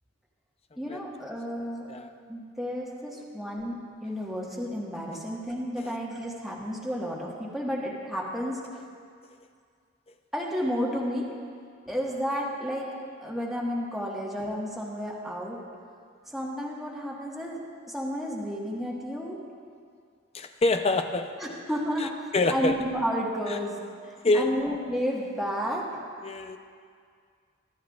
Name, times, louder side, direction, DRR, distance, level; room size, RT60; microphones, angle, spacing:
voice 1, 0.8-1.9 2.3-8.6 10.3-11.3 11.9-12.9 13.2-15.6 16.3-17.6 17.9-19.4 21.4-23.8 24.3-25.9, equal, ahead, -5 dB, 1.4 m, -31 dB
voice 2, 20.3-21.3 22.0-22.7 23.5-23.6 24.2-24.5 26.2-26.6, left 2 dB, 30° left, 6 dB, 0.5 m, -26 dB
20.5 x 11.5 x 2.4 m, 2.1 s
head